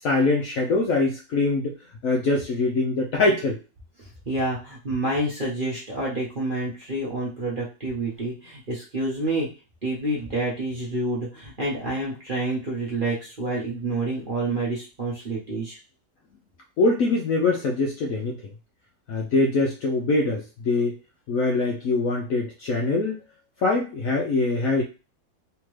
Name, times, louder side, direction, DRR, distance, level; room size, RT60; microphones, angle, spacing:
voice 1, 0.0-1.7 2.0-3.6 16.8-18.5 19.1-21.0 21.3-23.2 23.6-24.8, left 3 dB, 70° left, 0 dB, 0.8 m, -23 dB
voice 2, 4.0-9.5 9.8-15.8, right 2 dB, 40° right, -4 dB, 0.8 m, -28 dB
3.5 x 2.9 x 3.1 m, 0.31 s
omnidirectional pair, 2.0 m